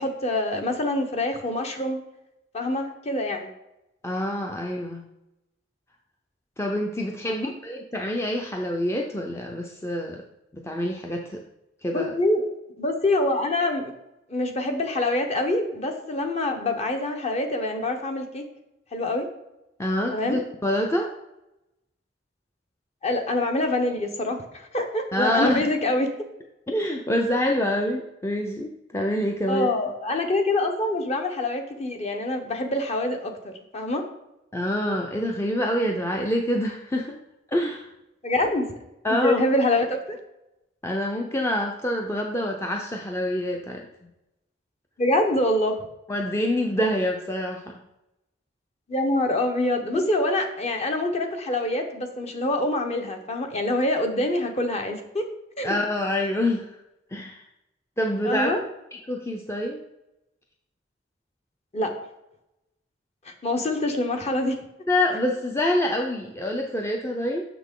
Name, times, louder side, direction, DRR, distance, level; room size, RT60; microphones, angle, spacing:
voice 1, 0.0-2.0 2.5-3.5 7.3-7.4 11.9-13.9 14.3-18.4 18.9-19.3 20.1-20.4 23.0-26.1 29.5-34.0 38.2-38.7 39.2-40.2 45.0-45.8 48.9-55.3 55.6-55.7 58.2-58.6 61.7-61.9 63.3-64.6, left 1 dB, 35° left, 4 dB, 0.9 m, -25 dB
voice 2, 4.0-5.0 6.6-10.2 10.5-11.4 11.8-12.1 19.8-21.1 25.1-25.7 26.7-29.7 34.5-37.2 37.5-37.9 39.0-39.4 40.8-43.8 46.1-47.8 49.9-50.0 55.6-56.7 57.1-57.4 58.0-58.5 59.1-59.8 64.9-67.4, left 1 dB, 15° left, 1 dB, 0.5 m, -26 dB
6.4 x 5.9 x 3.7 m, 0.90 s
head